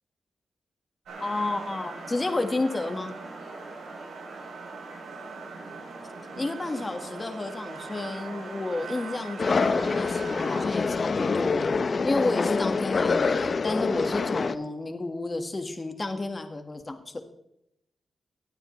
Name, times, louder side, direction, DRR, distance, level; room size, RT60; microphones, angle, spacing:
sound 1, 1.1-10.7, right 3 dB, 85° right, 3.2 m, -40 dB
voice 1, 1.2-3.1 6.4-11.7 12.0-17.2, left 2 dB, 30° left, 6 dB, 1.6 m, -31 dB
sound 2, 9.4-14.6, left 4 dB, 50° left, 0.7 m, -26 dB
17.5 x 9.7 x 3.2 m, 0.80 s
cardioid pair, 65°, 0 cm